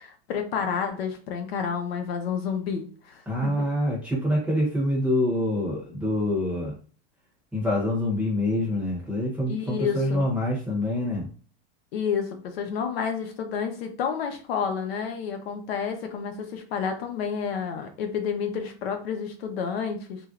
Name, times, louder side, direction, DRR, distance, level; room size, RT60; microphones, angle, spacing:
voice 1, 0.0-3.5 9.5-10.2 11.9-20.2, left 6 dB, 70° left, 5 dB, 0.8 m, -30 dB
voice 2, 3.3-6.7 7.5-11.3, left 1 dB, 5° right, -4 dB, 0.8 m, -26 dB
3.2 x 2.6 x 2.4 m, 0.39 s
supercardioid pair, 170°, 31 cm